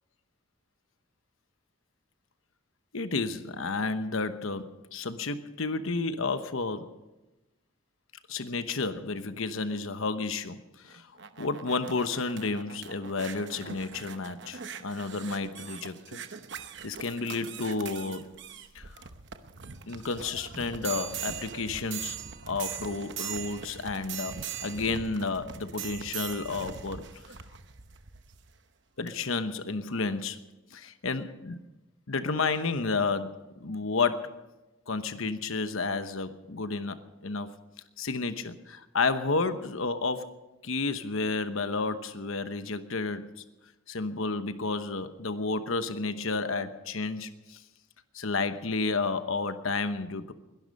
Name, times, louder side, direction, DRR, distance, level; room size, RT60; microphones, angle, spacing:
voice 1, 2.9-6.9 8.3-11.0 11.4-16.3 16.8-18.3 18.7-18.8 19.9-22.2 22.5-27.0 29.0-30.4 30.7-31.6 32.1-34.4 34.9-37.5 38.0-40.3 40.6-43.3 43.9-47.6 48.1-50.3, left 3 dB, 70° left, 10 dB, 1.0 m, -31 dB
sound 1, 10.9-28.5 29.1-29.2, right 8 dB, 55° right, 0.9 m, -41 dB
21.5 x 11.5 x 5.4 m, 1.1 s
head